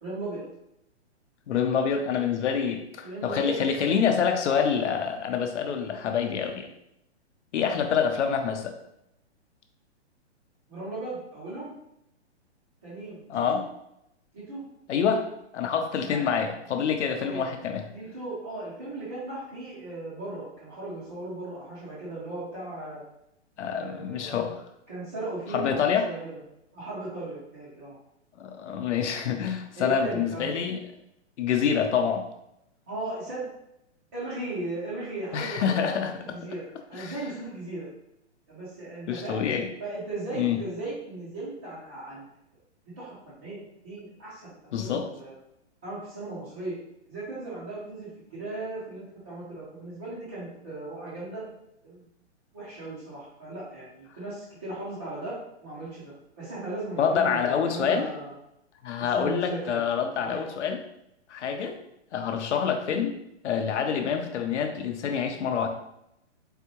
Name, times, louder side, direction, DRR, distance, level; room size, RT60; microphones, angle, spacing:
voice 1, 0.0-0.4 3.0-3.9 10.7-11.7 12.8-13.6 14.3-14.6 16.1-16.3 17.2-17.5 17.9-23.0 23.7-24.5 24.9-26.4 26.7-28.0 29.8-30.5 32.9-33.5 34.1-37.9 38.5-39.5 39.8-42.2 43.0-43.6 43.8-44.5 44.8-45.3 45.8-46.7 47.1-51.5 51.8-52.0 52.5-58.4 59.0-59.8 60.2-60.4, right 2 dB, 10° right, -11 dB, 0.4 m, -37 dB
voice 2, 1.5-6.7 7.5-8.7 13.3-13.6 14.9-15.3 15.5-17.9 23.6-24.6 25.5-26.1 28.4-30.8 31.4-32.3 35.3-36.1 36.9-37.2 39.1-39.7 40.3-40.6 44.7-45.1 57.0-58.1 58.8-60.8 61.3-61.8 62.1-63.1 63.4-65.7, left 7 dB, 80° left, 6 dB, 0.7 m, -26 dB
4.1 x 3.5 x 2.9 m, 0.81 s
hypercardioid pair, 165°, 35 cm